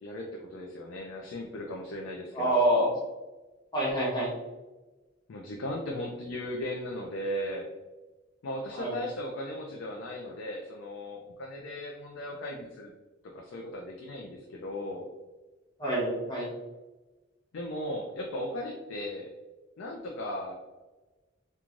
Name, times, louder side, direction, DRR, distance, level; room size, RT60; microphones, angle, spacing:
voice 1, 0.0-2.6 5.3-7.7 8.4-12.9 13.2-15.1 17.5-19.3 19.8-20.5, left 1 dB, 70° left, 0 dB, 0.4 m, -37 dB
voice 2, 2.3-2.9 3.7-4.3 8.7-8.9 15.8-16.5, right 1 dB, 20° left, -6 dB, 1.0 m, -26 dB
3.0 x 2.2 x 2.5 m, 1.2 s
head